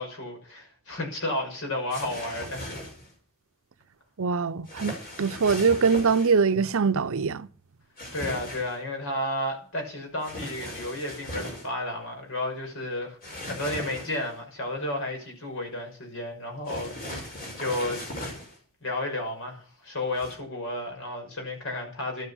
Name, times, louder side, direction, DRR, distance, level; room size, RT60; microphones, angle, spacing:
voice 1, 0.0-2.7 8.1-18.1 18.8-22.3, left 1 dB, 65° left, 5.8 m, -32 dB
sound 1, 1.9-3.1 4.7-6.3 8.0-8.8 10.2-11.7 13.2-14.3 16.7-18.6 20.1-20.3, left 1 dB, 45° left, 6.1 m, -38 dB
voice 2, 4.2-7.5, right 5 dB, 65° right, 0.7 m, -23 dB
12.5 x 9.9 x 7.1 m
head